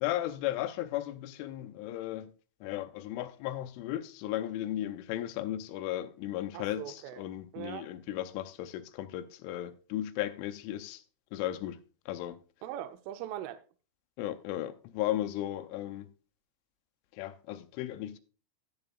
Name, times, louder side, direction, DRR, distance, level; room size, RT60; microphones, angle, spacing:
voice 1, 0.0-2.3 2.6-11.0 11.3-11.8 12.1-12.4 14.2-16.1 17.1-18.2, left 13 dB, 85° left, 3.0 m, -35 dB
voice 2, 6.5-7.2 7.5-7.9 12.6-13.6, right 12 dB, 85° right, 3.1 m, -40 dB
13.0 x 10.5 x 2.3 m
omnidirectional pair, 5.6 m